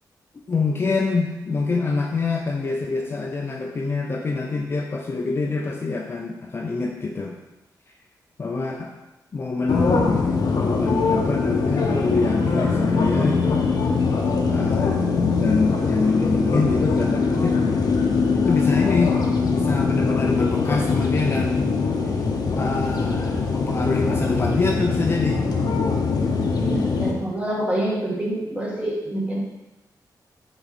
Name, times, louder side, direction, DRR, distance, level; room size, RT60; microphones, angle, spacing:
voice 1, 0.5-7.3 8.4-8.9 9.3-10.2 10.5-13.7 14.5-17.6 18.3-19.2 19.4-21.7 22.1-22.2 22.6-25.5, left 3 dB, 30° left, 1 dB, 0.5 m, -25 dB
sound 1, 9.7-27.1, left 4 dB, 60° left, 0.8 m, -22 dB
voice 2, 26.6-29.4, right 1 dB, 15° right, -3 dB, 1.4 m, -26 dB
5.7 x 4.0 x 4.2 m, 1.0 s
wide cardioid pair, 135°, 7 cm